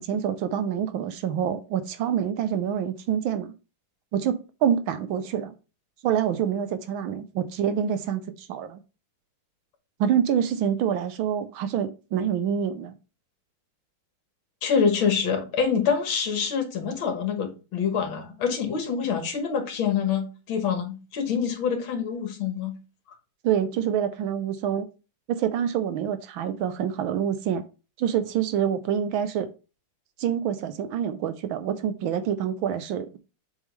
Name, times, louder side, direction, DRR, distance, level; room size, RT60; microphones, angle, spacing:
voice 1, 0.0-3.5 4.1-5.5 6.0-8.8 10.0-12.9 23.4-24.9 25.3-27.6 28.0-29.5 30.2-33.2, right 9 dB, 75° right, 1.4 m, -26 dB
voice 2, 14.6-22.8, left 6 dB, 70° left, 2.0 m, -26 dB
7.3 x 4.0 x 3.2 m
omnidirectional pair, 2.3 m